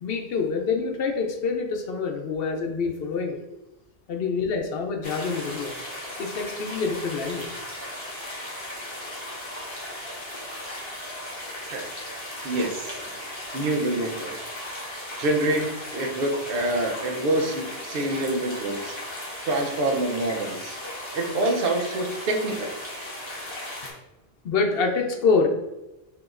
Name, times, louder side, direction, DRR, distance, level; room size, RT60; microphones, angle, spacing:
voice 1, 0.0-3.4 4.1-5.7 6.2-7.5 24.4-25.5, left 4 dB, 70° left, 4 dB, 0.8 m, -26 dB
sound 1, 5.0-23.9, left 1 dB, 30° left, 1.0 m, -36 dB
voice 2, 12.4-13.1 13.5-14.3 15.2-18.9 19.4-20.8 21.1-22.7, right 1 dB, 65° right, 3 dB, 0.8 m, -26 dB
4.9 x 2.8 x 2.4 m, 0.98 s
omnidirectional pair, 1.0 m